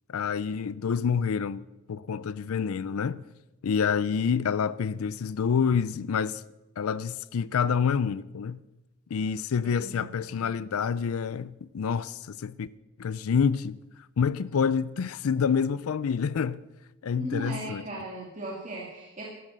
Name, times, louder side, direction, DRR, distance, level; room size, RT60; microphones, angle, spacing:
voice 1, 0.1-3.2 3.6-6.4 6.8-8.6 9.1-12.7 13.0-13.8 14.2-16.6 17.0-17.8, left 6 dB, 80° left, 0.4 m, -27 dB
voice 2, 9.6-10.1 17.1-19.2, right 1 dB, 35° right, 2.4 m, -37 dB
13.5 x 13.0 x 6.7 m
head